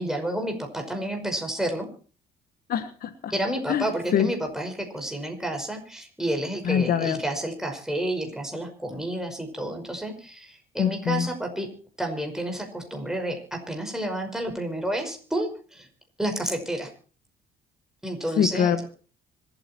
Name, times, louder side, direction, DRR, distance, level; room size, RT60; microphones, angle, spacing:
voice 1, 0.0-1.9 3.3-11.7 12.0-15.9 16.2-16.9 18.0-18.8, right 1 dB, 5° right, 3 dB, 5.5 m, -30 dB
voice 2, 2.7-3.3 3.7-4.3 6.6-7.2 10.8-11.3 18.4-18.9, left 8 dB, 60° left, 10 dB, 1.5 m, -24 dB
26.0 x 9.2 x 4.5 m, 0.40 s
cardioid pair, 110°, 17 cm